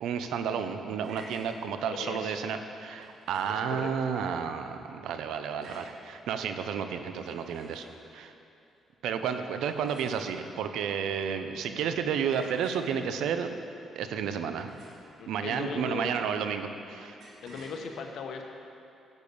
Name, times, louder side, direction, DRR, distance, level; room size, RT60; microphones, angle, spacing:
voice 1, 0.0-7.9 8.1-8.3 9.0-13.5 14.0-14.7 15.3-17.2, right 7 dB, 80° right, 8 dB, 0.8 m, -31 dB
sound 1, 1.0-1.5 3.0-3.6 5.6-6.0 7.1-8.1 9.6-10.5 12.3-12.9 14.6-15.2 17.2-17.8, right 1 dB, 65° right, 3.1 m, -51 dB
voice 2, 1.9-2.4 3.5-3.9 15.2-16.4 17.4-18.4, left 5 dB, 70° left, 3 dB, 1.3 m, -38 dB
11.0 x 8.3 x 7.1 m, 2.7 s
cardioid pair, 90°, 0 cm